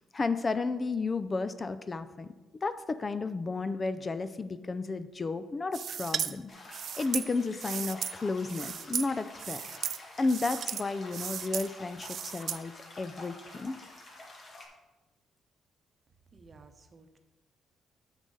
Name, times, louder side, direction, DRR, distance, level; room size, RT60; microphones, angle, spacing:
voice 1, 0.1-2.3 2.6-6.4 6.7-9.6 10.2-13.8, left 3 dB, 30° left, 12 dB, 0.4 m, -32 dB
sound 1, 5.7-6.3 6.7-8.1 8.4-9.1 9.4-10.0 10.2-10.8 11.1-11.7 12.0-12.6, right 8 dB, 60° right, 0.3 m, -35 dB
sound 2, 6.5-14.7, left 2 dB, 45° left, 1.9 m, -49 dB
voice 2, 16.3-17.2, right 3 dB, 40° right, 7 dB, 0.9 m, -55 dB
9.0 x 6.4 x 3.8 m, 1.2 s
cardioid pair, 90°, 0 cm